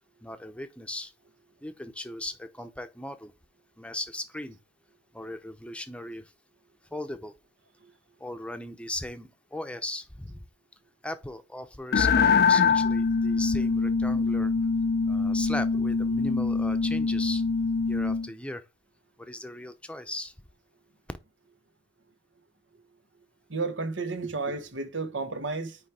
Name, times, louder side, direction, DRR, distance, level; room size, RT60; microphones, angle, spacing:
voice 1, 0.2-1.1 1.6-3.3 3.8-4.6 5.1-6.3 6.9-7.3 8.2-10.5 11.0-14.5 15.0-17.4 17.9-18.6 19.2-20.3, left 1 dB, 5° left, 0.8 m, -37 dB
sound 1, 11.9-18.3, left 5 dB, 55° left, 0.4 m, -24 dB
voice 2, 23.5-25.8, right 3 dB, 80° right, 1.3 m, -32 dB
9.7 x 3.3 x 4.8 m
head